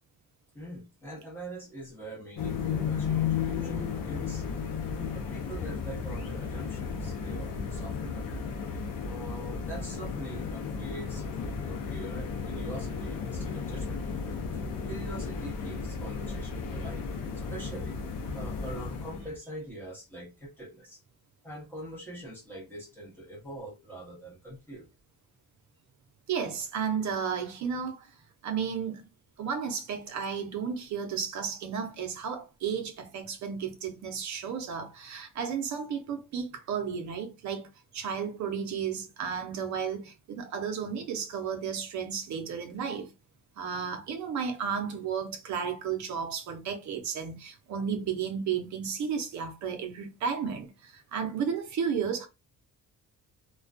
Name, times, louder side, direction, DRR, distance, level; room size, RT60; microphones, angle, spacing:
voice 1, 0.5-4.5 5.1-8.3 9.0-14.0 14.8-17.1 17.3-18.0 18.3-21.0 21.4-24.9, right 1 dB, 5° left, 0.8 m, -43 dB
sound 1, 2.4-19.4, left 6 dB, 65° left, 0.6 m, -34 dB
voice 2, 26.3-28.1 28.4-29.1 29.4-37.7 37.9-43.1 43.6-52.3, right 7 dB, 55° right, 0.6 m, -33 dB
2.3 x 2.2 x 2.5 m
cardioid pair, 175°, 36 cm